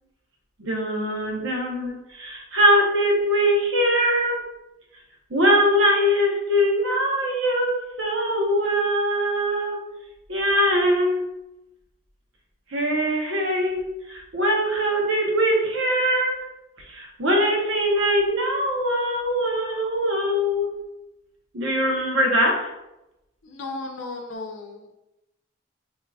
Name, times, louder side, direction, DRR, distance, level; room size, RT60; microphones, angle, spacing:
voice 1, 0.6-4.5 5.3-9.8 10.3-11.3 12.7-16.5 16.8-20.7 21.5-22.7, equal, 75° right, 0 dB, 0.8 m, -22 dB
voice 2, 23.4-24.9, left 3 dB, 75° left, 2 dB, 0.6 m, -35 dB
4.7 x 2.7 x 2.3 m, 0.93 s
head